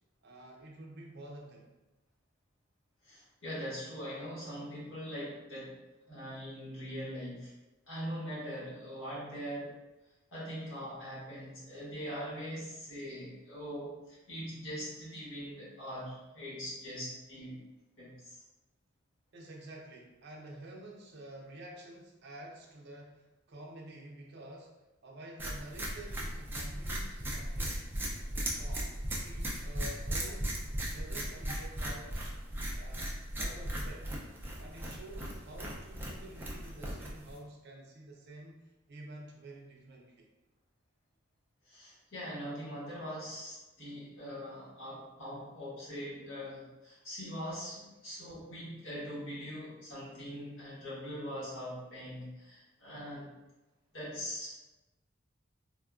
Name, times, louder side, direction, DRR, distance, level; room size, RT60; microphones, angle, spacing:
voice 1, 0.2-1.7 19.3-27.8 28.3-28.9 29.2-30.6 30.9-32.3 32.7-34.1 34.6-38.6 38.9-40.3, right 1 dB, 55° right, -1 dB, 0.6 m, -49 dB
voice 2, 3.0-5.7 6.1-7.5 7.9-9.7 10.3-17.6 18.0-18.4 41.6-53.3 53.9-54.6, equal, 75° left, -8 dB, 1.3 m, -42 dB
sound 1, 25.4-37.4, right 1 dB, 10° right, 0.4 m, -37 dB
3.6 x 2.2 x 2.4 m, 1.0 s
head